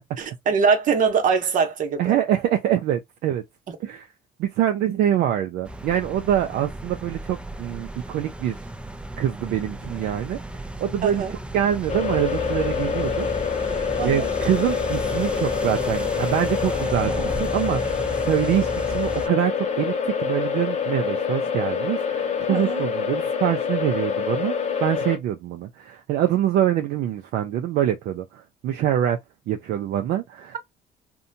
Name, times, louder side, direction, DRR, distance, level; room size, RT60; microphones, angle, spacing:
voice 1, 0.2-2.2 11.0-11.3 14.0-14.3 22.5-22.9, right 5 dB, 50° right, 0.8 m, -22 dB
voice 2, 2.0-3.4 3.8-4.1 4.4-8.6 9.2-10.4 10.8-13.3 13.6-17.9 18.2-24.5 24.8-29.2 29.5-30.6, right 11 dB, 70° right, 0.5 m, -25 dB
sound 1, 5.6-19.3, equal, 5° right, 0.3 m, -34 dB
sound 2, 11.9-25.2, left 6 dB, 40° left, 0.6 m, -26 dB
2.7 x 2.2 x 2.6 m
cardioid pair, 110°, 17 cm